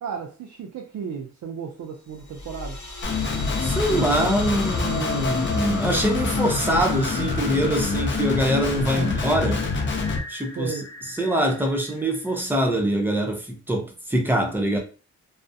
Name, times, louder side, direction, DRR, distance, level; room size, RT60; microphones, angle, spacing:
voice 1, 0.0-2.8 8.9-9.1 10.6-10.9, right 6 dB, 75° right, 0.5 m, -34 dB
sound 1, 2.1-12.7, left 2 dB, 70° left, 0.8 m, -35 dB
Guitar, 3.0-10.2, left 4 dB, 40° left, 0.5 m, -26 dB
voice 2, 3.6-9.7 10.3-10.7 11.2-14.8, right 1 dB, 5° right, 0.5 m, -24 dB
2.3 x 2.0 x 2.6 m
wide cardioid pair, 140°, 30 cm